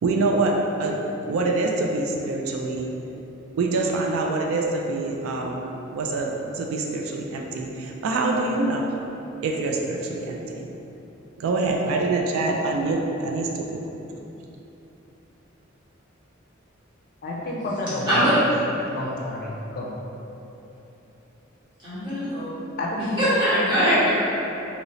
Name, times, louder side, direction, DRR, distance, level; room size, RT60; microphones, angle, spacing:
voice 1, 0.0-1.0 1.2-2.9 3.5-5.7 5.9-8.8 9.4-10.7 11.4-13.8, right 3 dB, 85° right, 0 dB, 0.3 m, -25 dB
voice 2, 17.2-18.4 18.9-20.0 22.8-23.2, left 1 dB, 45° left, -3 dB, 0.4 m, -30 dB
voice 3, 18.1-18.4 21.9-22.5 22.9-24.1, equal, 25° right, -13 dB, 1.3 m, -21 dB
3.0 x 2.8 x 2.7 m, 3.0 s
head